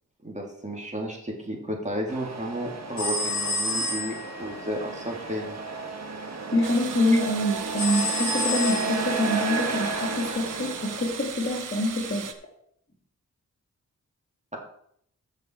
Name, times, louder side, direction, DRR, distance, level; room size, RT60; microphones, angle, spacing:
voice 1, 0.2-5.6, equal, 25° right, 0 dB, 2.7 m, -33 dB
Truck, 2.1-11.1, right 3 dB, 55° right, 1.5 m, -33 dB
sound 1, 3.0-4.4 7.8-9.2, left 2 dB, 65° left, 1.7 m, -29 dB
voice 2, 6.5-12.2, left 1 dB, 40° left, 2 dB, 2.4 m, -26 dB
sound 2, 6.6-12.3, right 7 dB, 75° right, 0.9 m, -37 dB
13.5 x 5.7 x 4.5 m, 0.69 s
cardioid pair, 70°, 31 cm